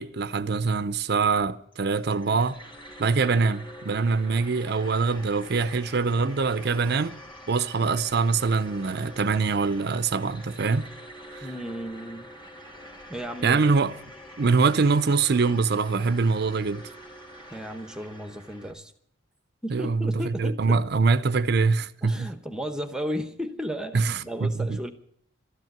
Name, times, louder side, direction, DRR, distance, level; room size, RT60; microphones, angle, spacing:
voice 1, 0.0-2.6 3.0-7.1 7.5-10.9 11.3-11.4 13.4-13.9 14.4-16.8 19.7-22.3 23.9-24.8, right 4 dB, 55° right, 0.6 m, -24 dB
sound 1, 1.7-18.7, equal, 25° left, 2.3 m, -45 dB
voice 2, 11.4-12.3 13.1-13.6 17.5-18.9 19.6-20.8 22.0-24.9, equal, 5° right, 0.8 m, -34 dB
13.0 x 11.0 x 8.9 m
head